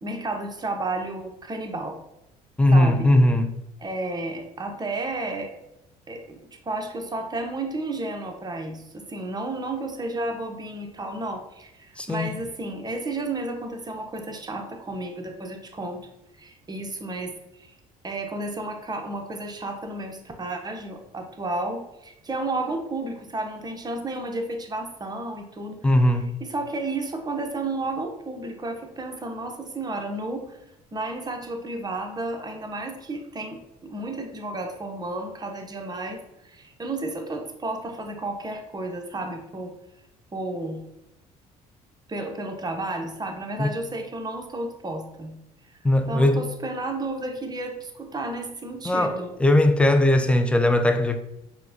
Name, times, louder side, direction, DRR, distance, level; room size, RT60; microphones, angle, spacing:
voice 1, 0.0-2.0 2.7-3.1 3.8-5.5 6.1-16.0 16.4-17.7 18.0-25.8 26.4-30.6 30.9-39.7 40.3-40.8 42.1-45.3 46.1-49.3, right 2 dB, 25° right, 0.7 m, -32 dB
voice 2, 2.6-3.6 12.0-12.4 25.8-26.4 43.6-43.7 45.8-46.4 48.9-51.2, left 1 dB, 5° left, 0.4 m, -19 dB
4.5 x 2.1 x 2.7 m
supercardioid pair, 70°, 18 cm